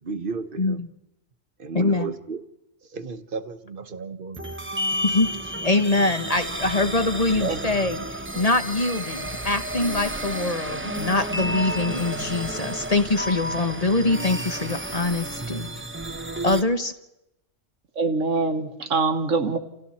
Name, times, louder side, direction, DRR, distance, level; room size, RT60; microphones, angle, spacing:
voice 1, 0.0-0.8 1.6-2.4 2.8-4.6, right 4 dB, 45° right, 11 dB, 1.2 m, -34 dB
voice 2, 1.7-2.1 5.0-5.3 5.6-15.7 16.4-16.9, left 2 dB, 30° left, 8 dB, 1.2 m, -24 dB
sound 1, 4.3-16.6, right 1 dB, 10° right, 0.8 m, -31 dB
voice 3, 18.0-19.6, right 4 dB, 90° right, 7 dB, 1.9 m, -24 dB
29.0 x 29.0 x 4.3 m, 0.89 s
omnidirectional pair, 1.3 m